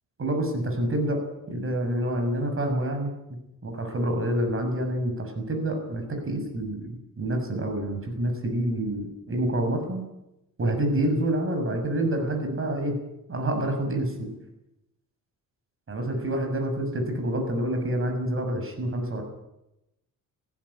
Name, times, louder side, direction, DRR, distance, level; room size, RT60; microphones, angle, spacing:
voice 1, 0.2-1.2 1.5-3.1 3.6-10.0 10.6-13.0 13.3-14.3 15.9-19.2, right 1 dB, 40° right, 5 dB, 6.4 m, -27 dB
19.0 x 15.0 x 9.8 m, 0.89 s
cardioid pair, 115°, 34 cm